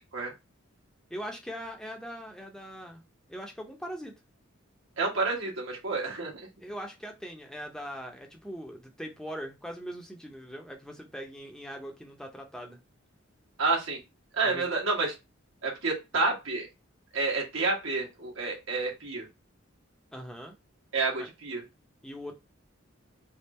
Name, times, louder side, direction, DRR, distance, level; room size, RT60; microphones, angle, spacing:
voice 1, 1.1-3.0 3.3-4.1 6.6-12.8 14.4-14.7 20.1-20.5 21.2-21.3 22.0-22.3, equal, 5° left, 0.6 m, -41 dB
voice 2, 5.0-6.5 13.6-14.0 14.3-15.1 15.6-16.7 17.1-19.3 20.9-21.6, right 3 dB, 80° right, 1.4 m, -29 dB
3.4 x 2.4 x 4.1 m
head